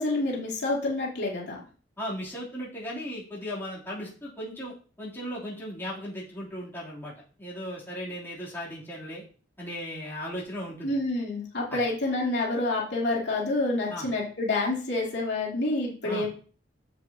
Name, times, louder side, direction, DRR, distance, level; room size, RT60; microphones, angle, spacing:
voice 1, 0.0-1.6 10.8-16.3, left 2 dB, 65° left, -3 dB, 2.9 m, -28 dB
voice 2, 2.0-7.1 7.4-9.2 9.6-10.9 11.7-11.8 13.9-14.1 16.0-16.3, equal, 10° left, -7 dB, 3.3 m, -37 dB
10.0 x 7.6 x 2.9 m, 0.40 s
head